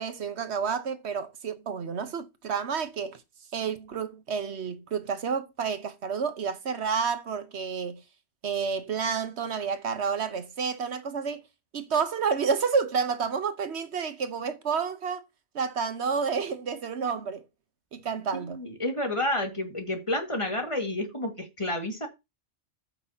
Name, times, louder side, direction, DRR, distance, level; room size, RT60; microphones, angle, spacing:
voice 1, 0.0-3.2 3.5-8.0 8.4-11.4 11.7-15.2 15.5-17.4 17.9-18.6, right 6 dB, 75° right, 1.3 m, -30 dB
voice 2, 18.3-22.1, left 1 dB, 30° left, 2.0 m, -30 dB
14.0 x 6.0 x 2.8 m
omnidirectional pair, 1.1 m